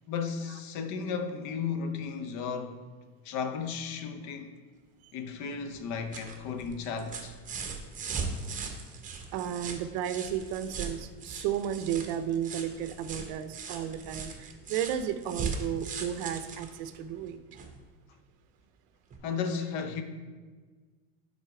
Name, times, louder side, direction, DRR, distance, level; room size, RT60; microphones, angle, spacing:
voice 1, 0.1-2.8 3.2-4.5 5.1-7.4 19.2-20.0, left 6 dB, 60° left, 0.8 m, -34 dB
sound 1, 5.7-17.8 19.1-19.2, right 4 dB, 25° right, 0.8 m, -39 dB
voice 2, 9.3-17.6, right 9 dB, 65° right, 0.6 m, -33 dB
6.2 x 4.1 x 4.8 m
supercardioid pair, 120°, 33 cm